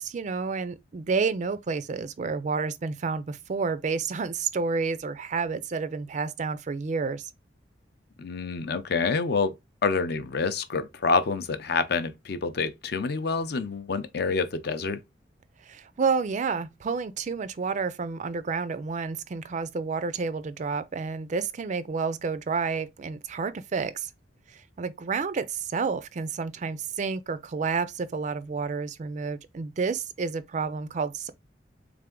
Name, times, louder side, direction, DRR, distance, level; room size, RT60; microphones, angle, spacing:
voice 1, 0.0-7.3 15.6-24.1 24.5-31.3, right 5 dB, 40° right, 0.4 m, -30 dB
voice 2, 8.2-9.6 9.8-15.0, left 4 dB, 55° left, 0.5 m, -27 dB
3.6 x 3.4 x 3.7 m
head